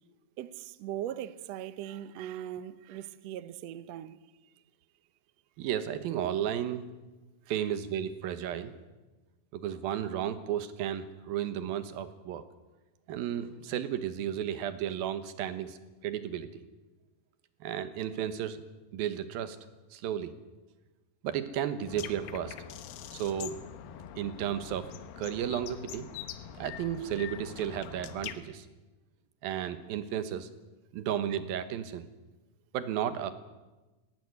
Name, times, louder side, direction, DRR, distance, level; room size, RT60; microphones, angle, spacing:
voice 1, 0.4-4.2 4.4-4.5, right 11 dB, 70° right, 1.6 m, -40 dB
voice 2, 5.6-6.9 7.5-8.7 9.5-12.4 13.1-15.8 16.0-16.5 17.6-18.6 18.9-19.6 19.9-20.3 21.2-22.6 23.1-23.6 24.2-24.9 25.2-26.1 26.6-28.7 29.4-30.5 30.9-32.1 32.7-33.3, right 10 dB, 90° right, 3.1 m, -33 dB
sound 1, 21.9-28.3, left 10 dB, 85° left, 2.9 m, -44 dB
19.0 x 17.5 x 9.6 m
omnidirectional pair, 4.0 m